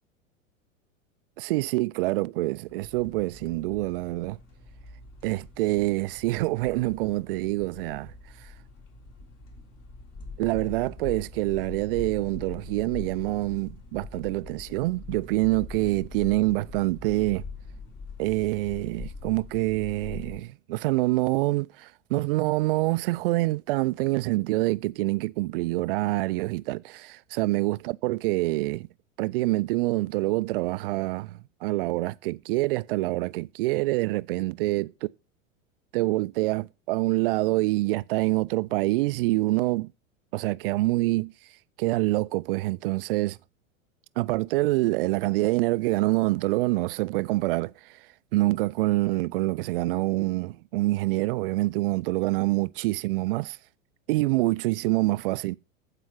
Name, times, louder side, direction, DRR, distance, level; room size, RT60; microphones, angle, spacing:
voice 1, 1.4-4.4 5.2-8.1 10.4-17.4 18.2-28.9 29.2-35.1 35.9-39.9 40.3-41.3 41.8-43.4 44.2-47.7 48.3-53.6 54.1-55.6, right 20 dB, 45° right, 0.5 m, -26 dB
sound 1, 2.7-20.4, left 4 dB, 35° left, 3.4 m, -43 dB
15.0 x 4.9 x 5.6 m
figure-of-eight pair, 85°, 41 cm